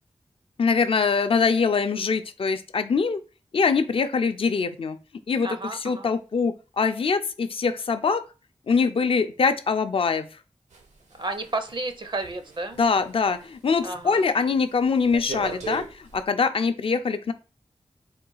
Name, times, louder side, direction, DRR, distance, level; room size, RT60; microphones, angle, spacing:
voice 1, 0.6-3.2 3.5-5.0 5.3-8.2 8.7-10.3 12.8-17.3, left 5 dB, 50° left, 9 dB, 0.4 m, -23 dB
voice 2, 5.4-6.1 11.2-12.8 13.8-14.2, right 2 dB, 40° right, 8 dB, 0.5 m, -32 dB
sound 1, 10.7-13.5 13.8-14.2 14.5-16.2, right 3 dB, 80° right, 0.8 m, -38 dB
3.8 x 2.3 x 3.9 m, 0.33 s
wide cardioid pair, 60°, 12 cm